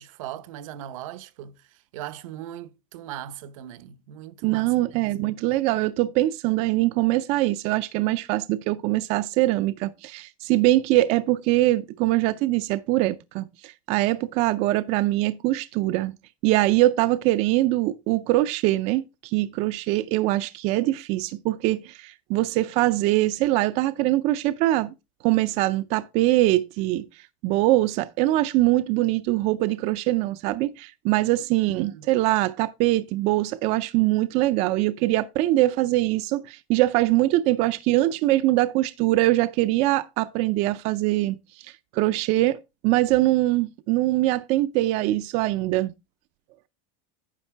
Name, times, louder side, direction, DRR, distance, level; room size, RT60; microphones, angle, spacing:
voice 1, 0.0-1.6 1.9-5.4 31.6-32.1, right 11 dB, 80° right, 0.9 m, -39 dB
voice 2, 4.4-16.1 16.4-24.9 25.2-27.1 27.4-45.9, right 17 dB, 40° right, 0.5 m, -23 dB
9.9 x 6.4 x 3.3 m
supercardioid pair, 165°, 17 cm